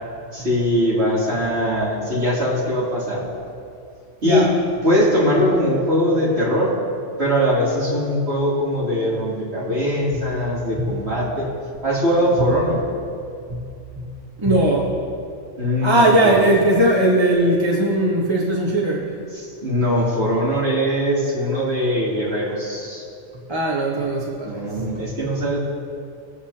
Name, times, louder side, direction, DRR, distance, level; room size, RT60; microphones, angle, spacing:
voice 1, 0.3-3.2 4.2-4.5 4.8-6.7 7.2-11.5 11.8-12.8 15.6-16.4 19.3-23.0 24.4-25.6, equal, 50° right, -7 dB, 3.4 m, -21 dB
voice 2, 14.4-14.9 15.8-19.1 23.5-25.0, right 1 dB, 20° right, -3 dB, 1.3 m, -19 dB
22.0 x 7.9 x 2.9 m, 2.5 s
omnidirectional pair, 1.4 m